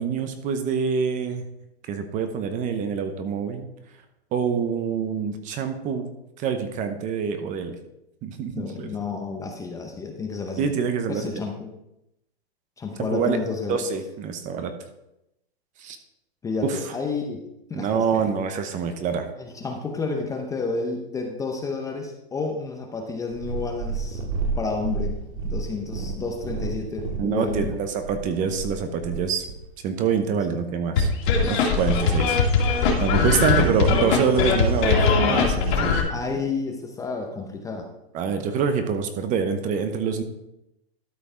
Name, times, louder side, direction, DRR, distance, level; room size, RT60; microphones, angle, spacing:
voice 1, 0.0-1.4 1.9-3.7 4.3-6.1 6.4-7.8 8.2-8.9 10.6-11.4 13.1-13.4 13.7-14.7 15.8-16.0 16.6-16.9 17.7-19.3 27.2-29.5 29.8-31.1 31.4-36.0 38.1-40.2, right 6 dB, 25° right, 8 dB, 0.8 m, -26 dB
voice 2, 8.5-10.7 11.1-11.7 12.8-13.8 16.4-17.4 17.7-18.2 19.4-24.2 24.6-25.2 25.5-27.7 36.1-37.9, left 4 dB, 10° left, 2 dB, 0.7 m, -30 dB
Purr, 23.3-29.6 30.4-30.5, right 4 dB, 55° right, 2.0 m, -31 dB
sound 1, 31.0-36.0, left 5 dB, 50° left, 2.4 m, -20 dB
12.5 x 5.1 x 4.4 m, 0.86 s
hypercardioid pair, 135°, 32 cm